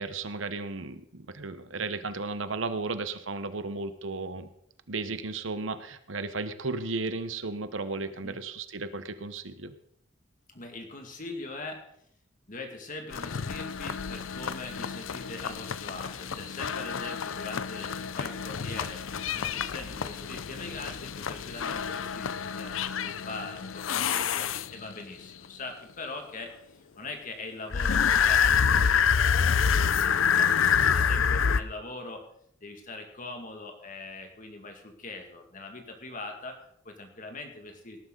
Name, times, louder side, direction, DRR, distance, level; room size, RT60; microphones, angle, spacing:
voice 1, 0.0-4.5 4.9-9.7, right 3 dB, 75° right, 11 dB, 1.0 m, -34 dB
voice 2, 10.5-11.9 12.5-32.2 32.6-38.0, left 2 dB, 40° left, 4 dB, 2.2 m, -42 dB
sound 1, 13.1-25.0 27.7-31.6, left 7 dB, 80° left, 0.6 m, -27 dB
18.0 x 11.0 x 4.0 m, 0.71 s
head